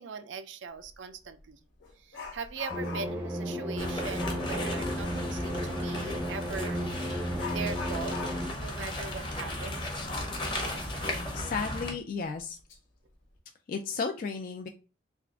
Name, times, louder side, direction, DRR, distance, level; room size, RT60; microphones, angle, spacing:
voice 1, 0.0-1.6 2.0-6.8 7.5-8.2 8.6-9.8, right 5 dB, 80° right, 10 dB, 0.5 m, -40 dB
Dog, 0.8-0.9 1.4-3.3 4.1-4.5 6.5-6.6 7.3-10.6 11.0-11.1 11.6-11.7 12.3-12.8 13.1-13.4, left 5 dB, 90° left, 1.1 m, -43 dB
sound 1, 2.7-8.5, equal, 10° right, 0.6 m, -34 dB
sound 2, 3.8-11.9, left 1 dB, 25° left, 0.8 m, -35 dB
voice 2, 11.0-12.6 13.7-14.7, left 5 dB, 45° left, 4 dB, 0.3 m, -34 dB
3.5 x 2.4 x 3.4 m, 0.33 s
head